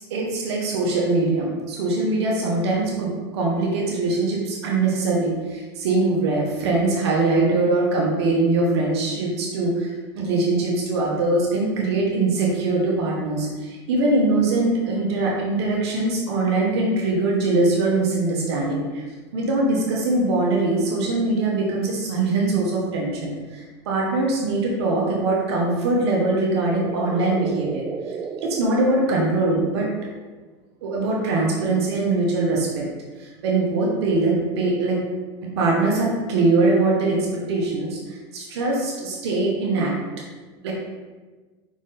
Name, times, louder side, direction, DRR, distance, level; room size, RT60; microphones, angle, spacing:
voice 1, 0.0-19.0 19.3-28.2 28.4-29.9 30.8-32.9 33.2-35.0 35.6-39.9 40.6-40.7, right 2 dB, 80° right, -2 dB, 1.3 m, -22 dB
sound 1, 25.8-30.0, right 6 dB, 20° right, 0.3 m, -35 dB
5.4 x 4.7 x 4.0 m, 1.3 s
supercardioid pair, 110°, 14 cm